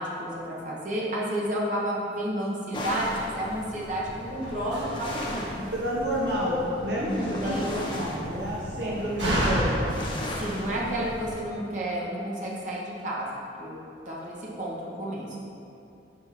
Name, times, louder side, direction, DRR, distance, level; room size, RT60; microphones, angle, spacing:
voice 1, 0.0-5.7 6.9-8.0 8.8-9.0 10.4-13.8 14.0-15.4, right 1 dB, 45° right, -5 dB, 1.2 m, -31 dB
sound 1, 2.7-11.3, left 1 dB, 25° left, 0.9 m, -37 dB
Slam, 3.8-11.4, equal, 90° right, 1.7 m, -33 dB
voice 2, 5.7-10.0, equal, 70° right, -5 dB, 1.0 m, -29 dB
6.3 x 4.8 x 5.9 m, 2.7 s
head